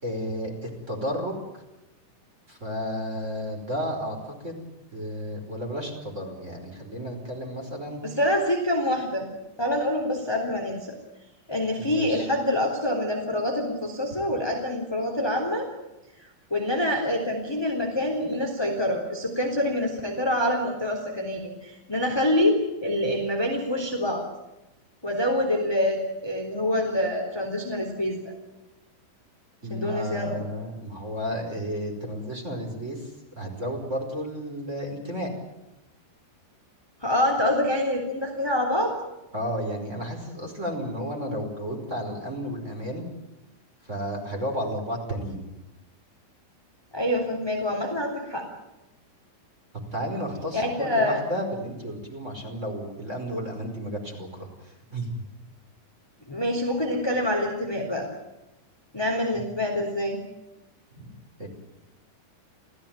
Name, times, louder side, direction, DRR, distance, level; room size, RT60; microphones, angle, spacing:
voice 1, 0.0-1.6 2.5-8.0 11.8-12.3 29.6-35.3 39.3-43.1 43.8-45.5 49.7-55.3 59.3-59.5 60.9-61.1 61.4-61.5, equal, 15° right, 3 dB, 5.1 m, -33 dB
voice 2, 8.0-9.3 9.6-11.0 11.5-15.7 16.5-24.2 25.0-28.3 29.7-30.4 37.0-38.9 46.9-48.5 50.5-51.2 56.3-58.1 58.9-60.2, left 1 dB, 5° left, 2 dB, 3.0 m, -26 dB
29.0 x 16.5 x 9.2 m, 0.97 s
omnidirectional pair, 5.2 m